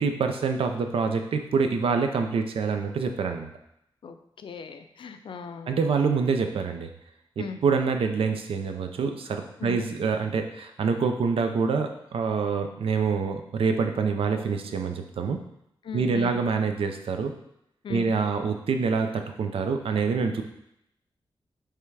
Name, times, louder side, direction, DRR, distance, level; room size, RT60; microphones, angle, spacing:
voice 1, 0.0-3.5 5.7-6.9 7.4-15.4 15.9-17.3 17.9-20.4, right 5 dB, 85° right, 6 dB, 0.6 m, -26 dB
voice 2, 4.0-5.8 7.4-7.6 9.6-9.8 15.8-16.4 17.8-18.1, left 6 dB, 65° left, 8 dB, 0.5 m, -38 dB
5.6 x 3.5 x 4.7 m, 0.79 s
wide cardioid pair, 170°, 9 cm